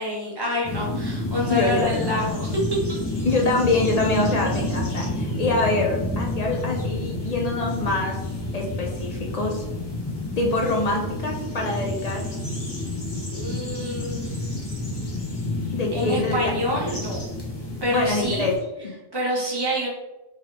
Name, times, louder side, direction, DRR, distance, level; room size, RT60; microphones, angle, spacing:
voice 1, 0.0-2.6 2.9-3.0 13.3-14.4 15.9-17.2 17.8-18.5 19.1-19.9, left 1 dB, 20° right, -4 dB, 1.0 m, -27 dB
sound 1, 0.6-18.6, left 1 dB, 25° left, 0.7 m, -29 dB
voice 2, 1.5-1.8 3.2-8.2 8.5-9.6 10.4-12.2 15.7-16.4 17.9-18.6 18.8-18.9, left 3 dB, 60° left, 0 dB, 0.4 m, -25 dB
3.4 x 3.4 x 2.9 m, 1.0 s
omnidirectional pair, 1.3 m